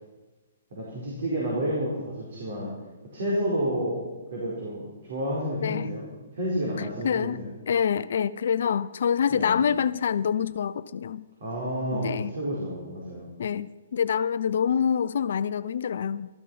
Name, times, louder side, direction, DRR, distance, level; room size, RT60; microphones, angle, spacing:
voice 1, 0.7-2.7 3.1-6.1 6.3-7.5 9.3-9.6 11.4-12.1 12.3-13.3, equal, 55° right, -4 dB, 4.9 m, -30 dB
voice 2, 5.6-5.9 6.8-11.2 11.9-12.4 13.4-16.3, left 7 dB, 55° left, 16 dB, 0.5 m, -26 dB
14.5 x 13.5 x 5.7 m, 1.2 s
figure-of-eight pair, 120°, 0 cm